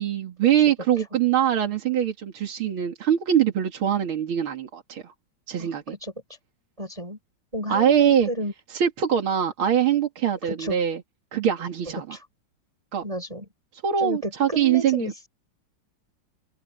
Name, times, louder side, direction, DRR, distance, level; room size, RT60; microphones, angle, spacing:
voice 1, 0.0-5.1 5.5-5.8 7.7-8.3 8.7-11.0 11.3-12.2 12.9-13.0 13.8-15.3, right 9 dB, 85° right, 2.9 m, -23 dB
voice 2, 5.6-6.1 6.8-7.2 7.5-8.5 10.4-10.8 12.1-12.3 13.0-13.5 14.0-15.3, right 1 dB, 15° right, 7.6 m, -32 dB
open air
omnidirectional pair, 2.2 m